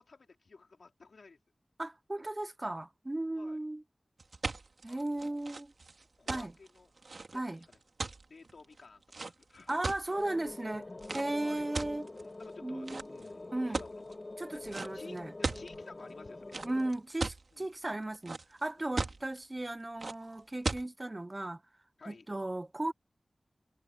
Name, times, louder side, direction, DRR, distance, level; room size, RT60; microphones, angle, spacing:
voice 1, 0.0-1.4 3.3-3.6 4.9-5.4 6.2-6.9 7.3-7.8 8.3-10.0 11.4-11.7 12.1-14.2 14.5-16.6 17.5-17.7 18.8-19.2 22.0-22.3, left 4 dB, 85° left, 4.3 m, -54 dB
voice 2, 1.8-3.8 4.8-5.7 6.3-6.5 7.3-7.6 9.7-10.9 11.1-12.1 12.6-13.0 13.5-13.8 14.4-15.3 16.6-21.6 22.1-22.9, right 1 dB, 30° right, 0.8 m, -36 dB
sound 1, 4.2-10.3 11.0-11.3 11.7-12.4 12.9-13.3 13.7-14.1 14.7-14.9 15.2-15.7 16.5-17.4 17.9-18.6 19.0-19.4 20.0-20.1 20.6-20.8, right 3 dB, 65° right, 2.1 m, -37 dB
sound 2, 10.1-16.9, left 2 dB, 40° left, 1.6 m, -45 dB
wide cardioid pair, 80°, 0 cm